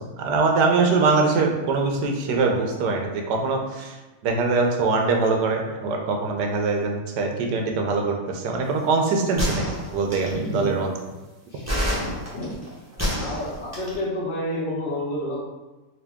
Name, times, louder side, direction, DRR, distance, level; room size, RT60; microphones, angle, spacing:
voice 1, 0.2-4.0 4.2-10.9, right 4 dB, 90° right, 2 dB, 1.3 m, -23 dB
sound 1, 9.4-10.5 11.7-14.0, equal, 15° right, 0.7 m, -27 dB
voice 2, 10.3-10.7 11.5-11.7 12.3-12.7 13.1-15.4, left 1 dB, 40° left, -8 dB, 1.2 m, -29 dB
3.9 x 2.8 x 3.5 m, 1.2 s
omnidirectional pair, 1.8 m